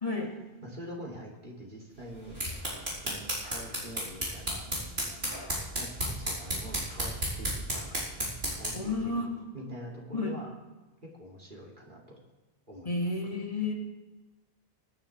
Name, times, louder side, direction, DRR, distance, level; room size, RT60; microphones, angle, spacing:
voice 1, 0.0-0.3 8.7-9.3 10.1-10.4 12.9-13.7, left 3 dB, 35° left, -1 dB, 2.1 m, -31 dB
voice 2, 0.6-2.4 3.0-4.7 5.8-8.1 8.5-9.3 9.5-10.5 11.0-12.2 12.7-13.1, equal, 55° right, -3 dB, 3.0 m, -45 dB
sound 1, 2.1-8.9, equal, 90° right, 4.6 m, -34 dB
23.5 x 10.0 x 3.4 m, 1.1 s
omnidirectional pair, 1.0 m